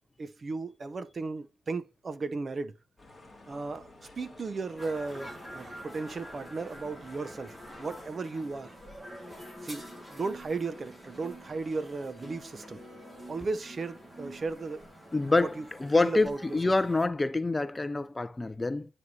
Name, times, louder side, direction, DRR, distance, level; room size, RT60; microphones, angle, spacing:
voice 1, 0.2-2.8 3.5-3.9 4.2-8.7 9.6-12.8 13.3-14.9 15.4-16.6, right 3 dB, 35° right, 0.6 m, -36 dB
sound 1, 3.0-8.1, left 2 dB, ahead, 2.6 m, -52 dB
sound 2, 4.8-17.1, equal, 15° right, 1.7 m, -47 dB
voice 2, 15.1-18.9, left 2 dB, 15° left, 0.4 m, -27 dB
9.7 x 4.8 x 2.7 m
cardioid pair, 90°, 0 cm